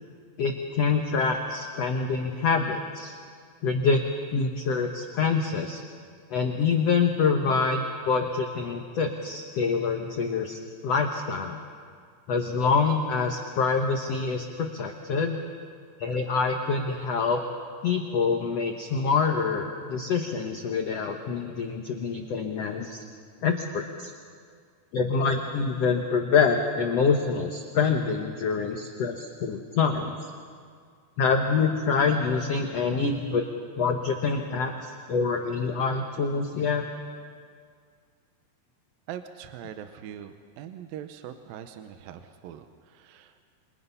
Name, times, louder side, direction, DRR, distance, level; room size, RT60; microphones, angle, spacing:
voice 1, 0.4-3.1 3.6-4.0 4.3-5.8 6.3-11.6 12.3-15.4 16.0-17.4 17.8-23.0 23.4-24.1 24.9-30.2 31.2-33.4 33.8-34.7 35.1-36.8, left 5 dB, 75° left, 3 dB, 1.5 m, -26 dB
voice 2, 39.1-43.4, right 9 dB, 75° right, 8 dB, 2.5 m, -42 dB
28.0 x 25.0 x 5.6 m, 2.1 s
omnidirectional pair, 4.6 m